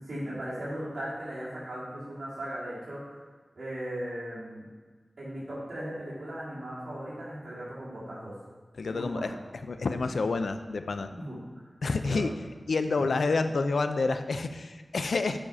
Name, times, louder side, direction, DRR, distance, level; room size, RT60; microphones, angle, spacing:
voice 1, 0.0-3.3 3.5-4.6 5.2-8.3 8.8-9.3 11.1-12.2, equal, 75° right, -9 dB, 2.6 m, -38 dB
voice 2, 8.8-11.1 11.8-12.3 12.7-15.4, left 3 dB, 90° left, 9 dB, 0.4 m, -28 dB
7.0 x 5.6 x 4.9 m, 1.4 s
wide cardioid pair, 70°, 0 cm